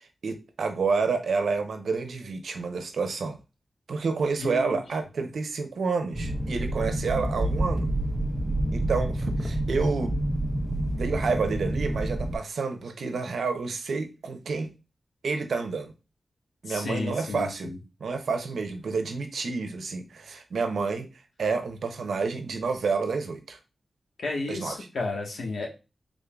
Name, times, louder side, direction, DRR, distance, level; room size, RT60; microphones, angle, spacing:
voice 1, 0.0-3.4 3.9-7.9 8.7-10.1 10.9-14.7 15.2-15.9 16.6-17.7 18.0-21.1 21.4-23.6 24.5-24.8, right 4 dB, 85° right, 0.6 m, -29 dB
voice 2, 4.4-4.8 16.7-17.8 24.2-25.8, left 3 dB, 85° left, 1.1 m, -32 dB
sound 1, 6.1-12.4, right 1 dB, 10° right, 0.7 m, -28 dB
3.7 x 3.5 x 2.3 m
wide cardioid pair, 75°, 0 cm